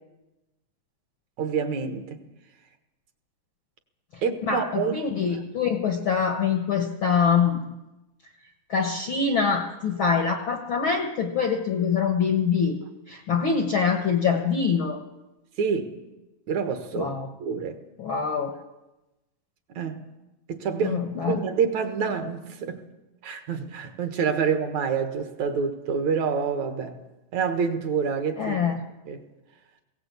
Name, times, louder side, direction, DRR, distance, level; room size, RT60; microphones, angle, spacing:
voice 1, 1.4-2.2 4.2-4.9 15.6-15.9 16.5-17.1 17.4-17.8 19.7-20.0 20.5-22.8 23.2-26.9 27.3-28.7 29.1-29.2, right 6 dB, 60° right, 2.6 m, -27 dB
voice 2, 4.5-7.7 8.7-12.8 13.1-15.0 16.9-17.3 18.0-18.5 20.8-21.4 28.4-28.8, left 6 dB, 55° left, 1.4 m, -24 dB
20.0 x 17.5 x 8.3 m
omnidirectional pair, 3.9 m